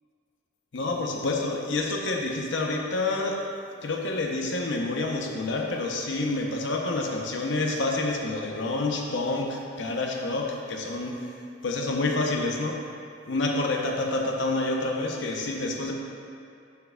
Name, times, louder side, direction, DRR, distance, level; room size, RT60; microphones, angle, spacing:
voice 1, 0.7-3.4 3.8-11.3 11.6-12.8 13.3-15.9, left 2 dB, 70° left, 1 dB, 0.7 m, -28 dB
6.8 x 6.6 x 2.2 m, 2.5 s
head